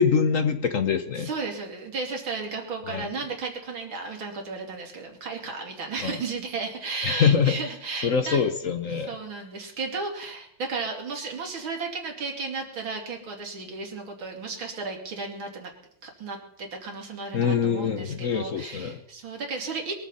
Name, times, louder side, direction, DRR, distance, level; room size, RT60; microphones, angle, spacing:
voice 1, 0.0-1.3 2.9-3.1 6.0-6.2 7.0-7.6 8.0-9.2 17.3-19.0, left 6 dB, 55° left, 9 dB, 1.0 m, -24 dB
voice 2, 1.2-8.4 9.0-15.7 16.0-19.9, right 4 dB, 70° right, 2 dB, 3.6 m, -34 dB
22.0 x 14.0 x 4.2 m, 0.70 s
omnidirectional pair, 2.3 m